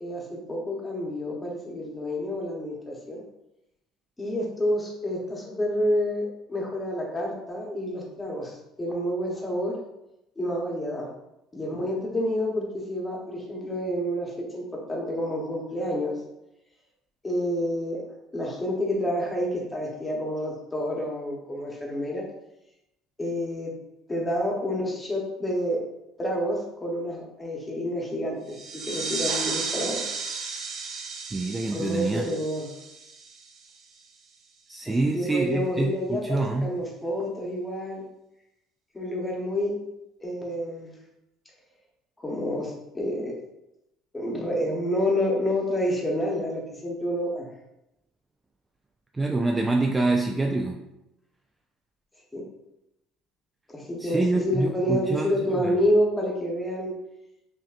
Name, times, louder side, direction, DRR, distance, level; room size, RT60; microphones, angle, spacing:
voice 1, 0.0-3.2 4.2-9.8 10.4-11.1 11.5-16.1 17.2-18.0 18.3-22.3 23.2-23.7 24.1-25.8 26.2-30.0 31.7-32.7 34.9-38.1 38.9-39.8 40.2-40.9 42.2-43.3 44.1-47.5 52.3-52.4 53.7-56.9, equal, 15° left, -2 dB, 1.0 m, -28 dB
sound 1, 28.5-33.8, right 4 dB, 60° right, 0.7 m, -34 dB
voice 2, 31.3-32.3 34.7-36.7 49.1-50.8 54.0-55.7, right 2 dB, 15° right, 1 dB, 0.3 m, -26 dB
5.8 x 2.6 x 2.4 m, 0.90 s
cardioid pair, 125°, 0 cm